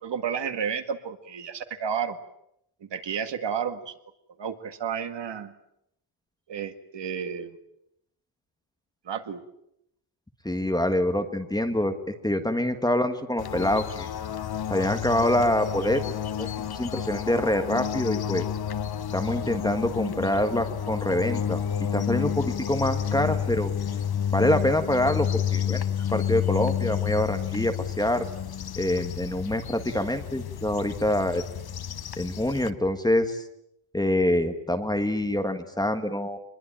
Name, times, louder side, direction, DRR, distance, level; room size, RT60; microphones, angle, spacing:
voice 1, 0.0-2.2 2.8-3.9 4.4-5.5 6.5-7.6 9.1-9.4, right 7 dB, 60° right, 8 dB, 2.1 m, -31 dB
voice 2, 10.4-12.0 12.2-14.1 14.7-18.5 19.1-23.7 24.3-25.8 26.1-28.2 28.8-31.4 32.2-33.4 33.9-36.4, left 1 dB, 10° left, 7 dB, 1.6 m, -26 dB
sound 1, 13.4-32.7, left 9 dB, 50° left, 1.1 m, -30 dB
25.0 x 21.5 x 8.9 m, 0.78 s
wide cardioid pair, 180°, 48 cm